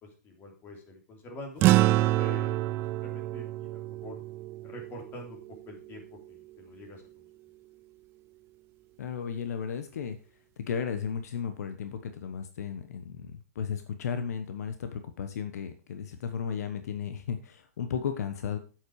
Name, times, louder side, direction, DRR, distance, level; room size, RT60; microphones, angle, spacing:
voice 1, 0.0-1.6 2.0-4.2 4.6-7.2, left 1 dB, 25° left, 2 dB, 3.2 m, -46 dB
sound 1, 1.6-6.3, right 16 dB, 25° right, 0.4 m, -27 dB
voice 2, 9.0-10.2 10.7-18.6, left 7 dB, 70° left, 8 dB, 1.2 m, -34 dB
8.7 x 8.0 x 4.8 m, 0.35 s
hypercardioid pair, 145°, 9 cm